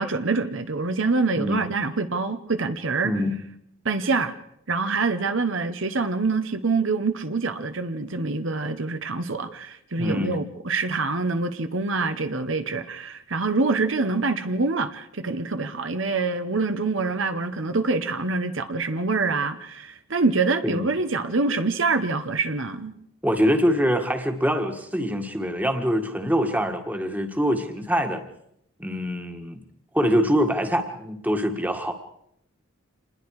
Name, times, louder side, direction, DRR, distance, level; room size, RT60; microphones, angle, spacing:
voice 1, 0.0-3.2 3.8-4.3 4.7-22.9, right 3 dB, 60° right, 1.1 m, -25 dB
voice 2, 3.0-3.4 10.0-10.4 20.6-20.9 23.2-28.2 28.8-29.6 29.9-31.9, equal, 10° right, 1.7 m, -24 dB
27.5 x 20.5 x 4.9 m
head